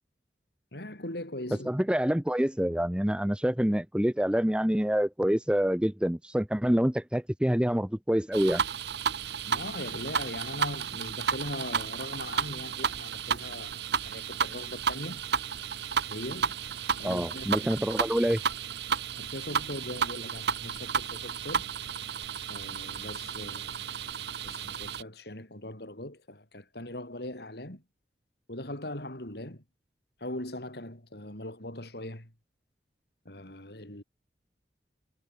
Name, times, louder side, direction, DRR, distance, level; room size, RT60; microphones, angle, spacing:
voice 1, 0.7-1.7 9.4-15.2 16.1-16.6 17.0-17.7 19.2-21.7 22.5-23.8 24.4-27.8 28.5-29.6 30.2-32.3 33.3-34.0, left 1 dB, 60° left, 5.6 m, -40 dB
voice 2, 1.7-8.6 17.0-18.4, equal, 5° right, 0.7 m, -26 dB
sound 1, 8.3-25.0, right 6 dB, 65° right, 0.9 m, -32 dB
head